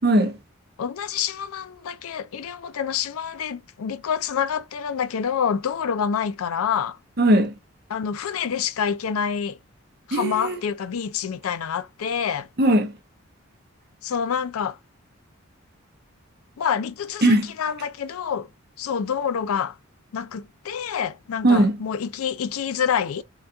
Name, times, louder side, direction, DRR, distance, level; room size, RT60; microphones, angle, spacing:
voice 1, 0.0-0.4 7.2-7.5 10.1-10.6 12.6-13.0 17.2-17.5 21.4-21.8, right 1 dB, 45° right, 0.7 m, -18 dB
voice 2, 0.8-7.0 7.9-9.6 10.1-12.5 14.0-14.8 16.6-18.5 18.8-19.8 20.1-23.2, left 7 dB, 80° left, 0.4 m, -27 dB
3.8 x 2.3 x 2.6 m
head